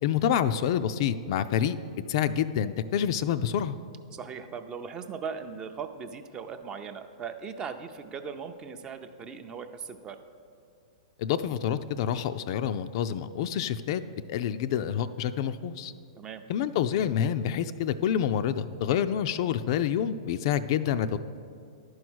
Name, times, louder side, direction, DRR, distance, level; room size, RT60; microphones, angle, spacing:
voice 1, 0.0-1.8 2.1-3.8 11.2-14.0 14.3-15.9 16.5-21.2, left 9 dB, 55° left, 11 dB, 0.3 m, -27 dB
voice 2, 4.1-10.2 16.2-16.4, right 6 dB, 25° right, 8 dB, 0.5 m, -39 dB
10.5 x 4.7 x 6.2 m, 2.3 s
hypercardioid pair, 130°, 3 cm